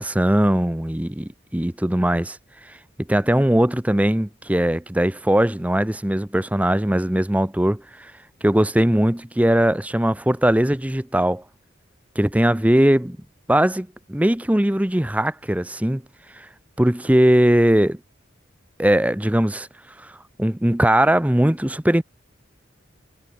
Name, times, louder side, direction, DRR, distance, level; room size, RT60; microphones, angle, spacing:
voice 1, 0.0-2.4 2.7-2.8 3.1-8.1 8.4-11.4 12.2-13.2 13.5-16.0 16.4-16.5 16.8-18.0 18.8-19.7 20.0-20.1 20.4-22.0, right 1 dB, 5° right, 0.6 m, -20 dB
head